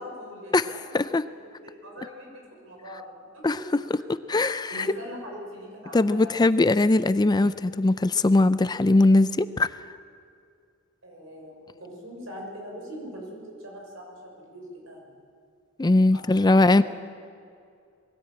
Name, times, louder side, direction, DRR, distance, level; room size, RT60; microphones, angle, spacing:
voice 1, 0.0-3.6 4.0-4.4 4.7-6.5 11.0-15.1 16.1-16.8, equal, 75° right, 0 dB, 6.2 m, -42 dB
voice 2, 4.3-4.9 5.9-9.7 15.8-16.8, left 2 dB, 20° left, 13 dB, 0.4 m, -20 dB
20.5 x 18.0 x 8.8 m, 2.3 s
head